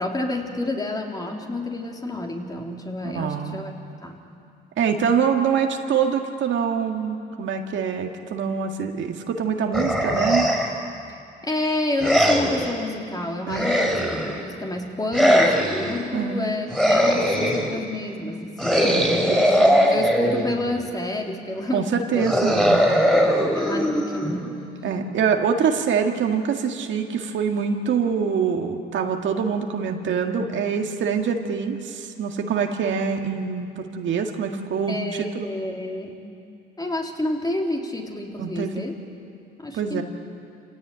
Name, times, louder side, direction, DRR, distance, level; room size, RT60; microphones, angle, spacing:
voice 1, 0.0-3.7 4.0-4.2 11.1-11.2 11.4-19.4 19.8-22.2 22.6-24.6 34.9-36.2 36.8-38.9 39.6-40.0, left 2 dB, 20° left, 1 dB, 3.4 m, -29 dB
voice 2, 3.2-3.6 4.8-10.5 13.5-13.9 16.1-16.4 18.8-19.8 21.7-22.9 24.8-35.5 38.4-38.9 39.7-40.0, right 6 dB, 70° right, 3 dB, 2.0 m, -25 dB
sound 1, 9.7-10.9 12.0-12.8 13.5-14.4 15.1-16.0 16.7-17.8 18.6-20.6 22.2-24.6, equal, 5° left, 5.2 m, -20 dB
27.5 x 17.0 x 9.1 m, 2.5 s
cardioid pair, 90°, 20 cm